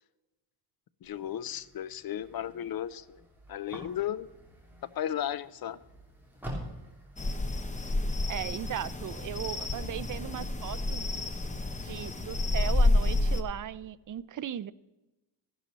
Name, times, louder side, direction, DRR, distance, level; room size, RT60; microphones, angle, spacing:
voice 1, 1.0-3.2 3.5-4.3 5.0-5.8, left 10 dB, 55° left, 17 dB, 0.5 m, -34 dB
sound 1, 1.0-9.6, equal, 5° right, 3.0 m, -48 dB
sound 2, 7.2-13.4, left 2 dB, 15° left, 0.7 m, -29 dB
voice 2, 8.3-11.2 11.8-14.7, right 11 dB, 45° right, 17 dB, 0.4 m, -37 dB
13.5 x 11.0 x 4.0 m, 1.0 s
wide cardioid pair, 155°, 44 cm